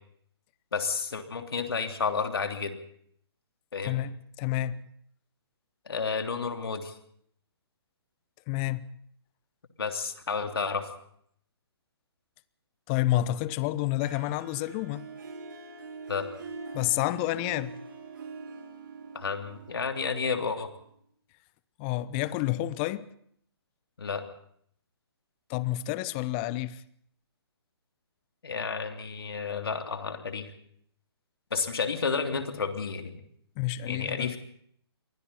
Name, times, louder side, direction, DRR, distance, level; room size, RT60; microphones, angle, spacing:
voice 1, 0.7-2.8 3.7-4.0 5.9-6.9 9.8-10.9 16.1-16.3 19.1-20.7 24.0-24.2 28.4-30.5 31.5-33.2 33.9-34.4, left 5 dB, 65° left, 3.1 m, -31 dB
voice 2, 3.8-4.8 8.5-8.9 12.9-15.1 16.7-17.8 21.8-23.1 25.5-26.8 33.6-34.3, left 15 dB, 25° left, 0.8 m, -29 dB
Harp, 14.0-20.9, right 4 dB, 50° right, 4.5 m, -44 dB
28.5 x 24.0 x 4.2 m
figure-of-eight pair, 135°, 14 cm